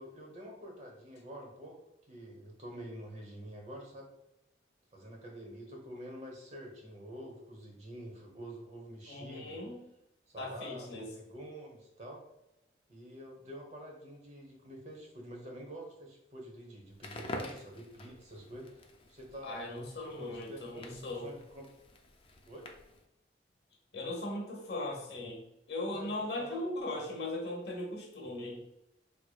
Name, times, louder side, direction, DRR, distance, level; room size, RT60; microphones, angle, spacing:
voice 1, 0.0-1.8 2.1-4.1 4.9-9.6 10.3-12.2 12.9-18.8 19.1-19.7 20.2-21.7 22.5-22.7 25.9-26.6, equal, 40° right, 0 dB, 0.9 m, -47 dB
voice 2, 9.1-9.8 10.4-11.1 19.4-21.3 23.9-28.6, left 1 dB, 65° left, 0 dB, 1.0 m, -38 dB
Crackle, 16.9-23.1, left 1 dB, 30° left, 0.4 m, -48 dB
4.5 x 3.0 x 2.3 m, 0.86 s
head